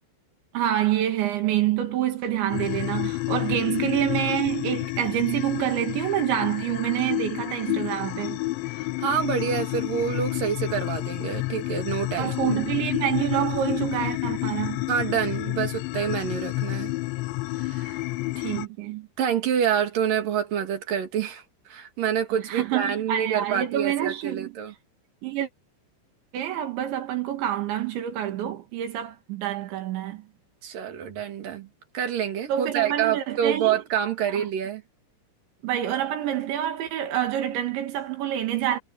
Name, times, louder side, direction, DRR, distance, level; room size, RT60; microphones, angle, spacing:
voice 1, 0.5-8.4 12.2-14.8 18.4-19.1 22.3-24.6 25.2-25.5 26.3-30.2 32.5-33.8 34.4-34.5 35.6-38.8, right 12 dB, 75° right, 4.4 m, -27 dB
sound 1, 2.5-18.7, left 21 dB, 85° left, 2.9 m, -30 dB
voice 2, 8.7-12.5 14.9-16.9 17.6-18.0 19.2-24.7 30.6-31.7 31.9-34.8, right 8 dB, 50° right, 3.7 m, -27 dB
omnidirectional pair, 5.4 m